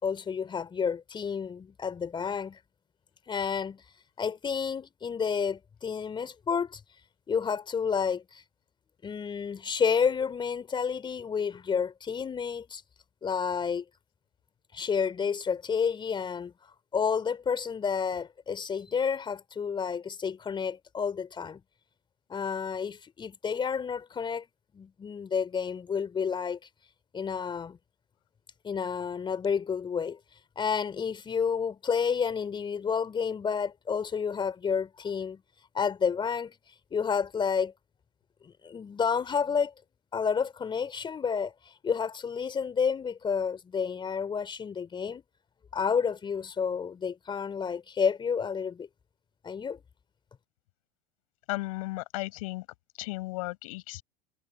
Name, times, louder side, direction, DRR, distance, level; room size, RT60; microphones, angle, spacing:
voice 1, 0.0-2.6 3.3-3.8 4.2-6.8 7.3-8.4 9.0-12.8 13.2-13.8 14.7-21.6 22.3-24.4 24.7-26.6 27.1-27.8 28.6-30.2 30.6-35.4 35.7-36.5 36.9-37.7 38.4-39.7 40.1-45.2 45.7-48.9 49.4-49.8, left 6 dB, 20° left, 3.1 m, -30 dB
voice 2, 51.5-52.6 53.0-54.0, left 21 dB, 60° left, 5.1 m, -35 dB
figure-of-eight pair, 80°, 21 cm